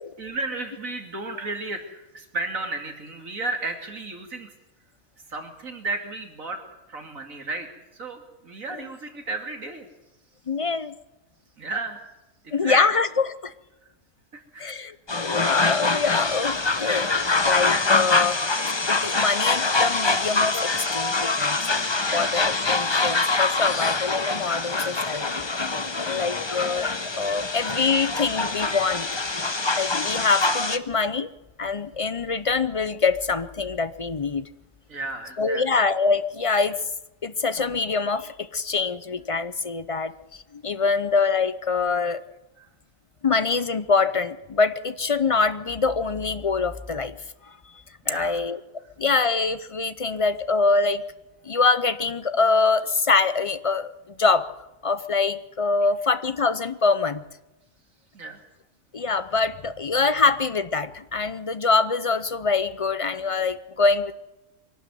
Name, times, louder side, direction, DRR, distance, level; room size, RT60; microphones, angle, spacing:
voice 1, 0.2-4.5 5.3-6.6 6.9-7.7 7.9-9.9 11.6-12.0 12.4-13.0 14.3-14.9 22.0-22.4 26.0-26.3 34.9-35.8 42.6-42.7 48.0-48.4 58.1-58.4, right 3 dB, 60° right, 4 dB, 3.0 m, -33 dB
voice 2, 10.5-11.0 12.5-13.5 14.6-17.1 17.4-18.4 18.9-21.8 22.1-25.5 26.1-26.9 27.2-29.2 29.8-31.3 31.6-34.5 35.4-36.8 37.2-42.2 43.2-47.2 48.1-48.6 49.0-51.0 51.4-53.9 54.2-54.5 54.8-57.2 58.9-64.1, left 4 dB, 45° left, 13 dB, 0.4 m, -24 dB
sound 1, 15.1-30.8, left 3 dB, 20° left, 0.8 m, -24 dB
23.5 x 12.0 x 9.3 m, 1.0 s
omnidirectional pair, 1.6 m